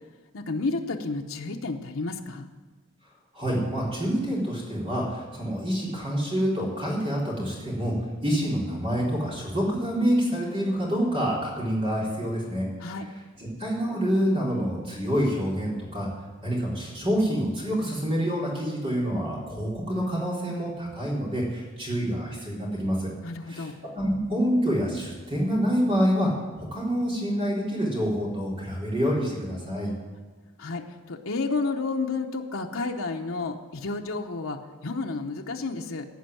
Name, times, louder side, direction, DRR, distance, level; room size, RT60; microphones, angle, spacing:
voice 1, 0.3-2.5 12.8-13.1 23.2-23.7 30.6-36.1, left 3 dB, 80° left, 2 dB, 0.9 m, -31 dB
voice 2, 3.3-7.9 8.2-12.6 13.6-16.1 16.4-23.1 23.5-26.3 26.6-29.9, equal, 25° right, -5 dB, 3.6 m, -27 dB
15.5 x 5.4 x 9.1 m, 1.3 s
head